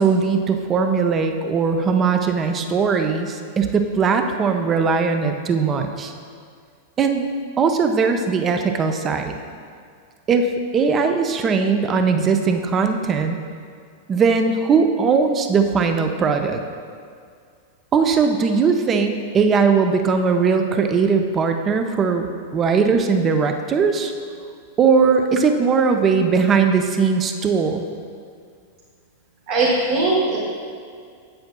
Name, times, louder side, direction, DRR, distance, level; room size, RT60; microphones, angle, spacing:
voice 1, 0.0-6.1 7.0-7.3 7.6-9.3 10.3-13.3 14.1-16.6 17.9-22.3 22.5-24.1 24.8-27.8, right 5 dB, 25° right, 6 dB, 0.6 m, -19 dB
voice 2, 29.5-30.4, right 3 dB, 55° right, -6 dB, 1.3 m, -19 dB
8.1 x 7.7 x 2.3 m, 2.2 s
figure-of-eight pair, 95°, 0 cm